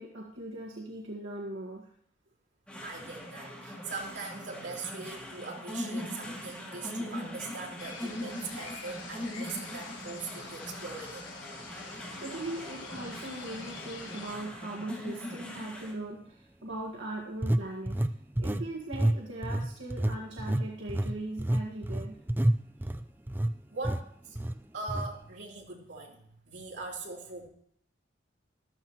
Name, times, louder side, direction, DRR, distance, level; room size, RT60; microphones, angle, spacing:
voice 1, 0.0-1.9 11.8-18.0 18.4-22.2, right 2 dB, 90° right, -3 dB, 1.8 m, -40 dB
sound 1, 2.7-15.9, left 1 dB, 5° left, 2.7 m, -41 dB
voice 2, 2.8-11.2 23.7-24.4 24.7-27.5, right 3 dB, 70° right, -2 dB, 3.3 m, -41 dB
sound 2, 7.8-14.3, left 4 dB, 85° left, 3.3 m, -46 dB
sound 3, 13.0-13.1 13.7-13.9 17.4-18.7 18.9-19.2 19.4-23.5 23.8-24.0 24.4-24.5 24.9-25.1, right 1 dB, 10° right, 0.5 m, -29 dB
13.5 x 12.5 x 3.0 m, 0.65 s
head